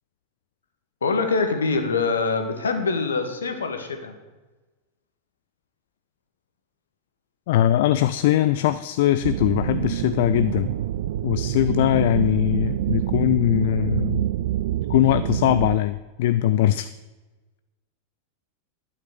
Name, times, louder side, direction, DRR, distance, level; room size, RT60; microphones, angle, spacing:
voice 1, 1.0-4.1, left 4 dB, 70° left, 7 dB, 1.6 m, -24 dB
voice 2, 7.5-10.7 11.2-14.3 14.9-16.9, left 13 dB, 50° left, 13 dB, 0.4 m, -21 dB
sound 1, 9.2-15.8, right 12 dB, 55° right, 0.4 m, -26 dB
11.0 x 8.6 x 6.7 m, 1.2 s
figure-of-eight pair, 90°, 0 cm